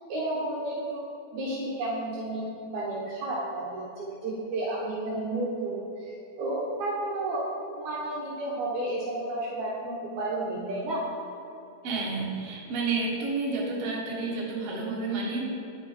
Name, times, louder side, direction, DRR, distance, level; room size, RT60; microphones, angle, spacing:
voice 1, 0.1-1.0 1.3-11.0, right 2 dB, 75° right, -5 dB, 2.2 m, -32 dB
voice 2, 11.8-15.4, right 3 dB, 55° right, -4 dB, 2.3 m, -30 dB
9.8 x 5.4 x 4.1 m, 2.9 s
omnidirectional pair, 3.4 m